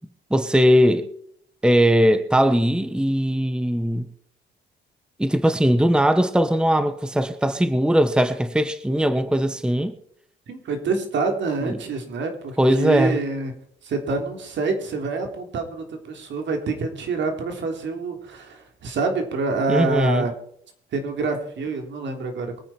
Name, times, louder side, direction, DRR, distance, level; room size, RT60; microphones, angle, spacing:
voice 1, 0.3-1.1 1.6-4.1 5.2-9.9 11.6-11.8 12.6-13.2 19.7-20.3, equal, 5° right, 1.0 m, -19 dB
voice 2, 10.5-13.5 13.8-20.3 20.9-22.6, right 3 dB, 65° right, 3.5 m, -26 dB
23.0 x 9.5 x 4.4 m
cardioid pair, 90°, 20 cm